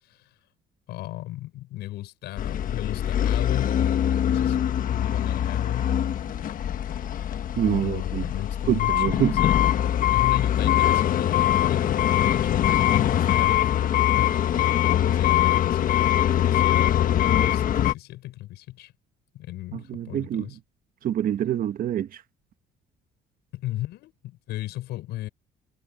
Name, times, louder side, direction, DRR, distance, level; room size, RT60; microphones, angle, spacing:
voice 1, 0.9-4.0 4.3-4.6 4.9-5.9 7.7-9.6 10.1-11.9 12.3-13.8 14.2-14.5 15.1-18.9 19.3-20.6 23.5-25.3, left 16 dB, 80° left, 6.0 m, -35 dB
sound 1, 2.4-17.9, left 11 dB, 55° left, 1.3 m, -22 dB
voice 2, 7.5-8.3 8.7-9.4 19.7-20.5 21.0-22.2, right 10 dB, 55° right, 1.5 m, -26 dB
cardioid pair, 110°, 17 cm